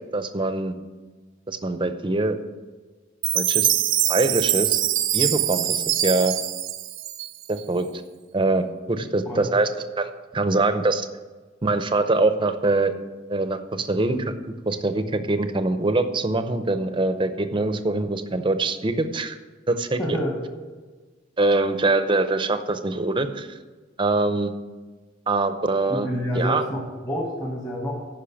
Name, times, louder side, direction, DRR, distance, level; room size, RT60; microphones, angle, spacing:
voice 1, 0.1-0.7 1.5-2.4 3.3-3.7 4.1-4.8 5.1-6.4 7.5-7.9 8.3-9.7 10.0-11.1 11.6-12.9 13.3-14.3 14.7-19.4 19.7-20.2 21.4-23.6 24.0-24.5 25.3-26.1 26.4-26.7, right 2 dB, 25° right, 9 dB, 0.6 m, -23 dB
Chime, 3.2-7.6, right 13 dB, 75° right, 0.6 m, -23 dB
voice 2, 20.0-20.4 25.9-28.1, equal, 20° left, -3 dB, 1.4 m, -28 dB
10.0 x 5.4 x 7.0 m, 1.3 s
head